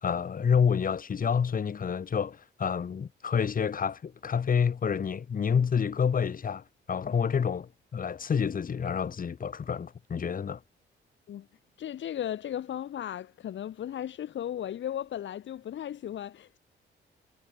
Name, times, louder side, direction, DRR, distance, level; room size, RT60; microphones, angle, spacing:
voice 1, 0.0-10.6, left 6 dB, 45° left, 3.2 m, -28 dB
voice 2, 11.8-16.6, left 10 dB, 70° left, 6.9 m, -36 dB
cardioid pair, 90°, 20 cm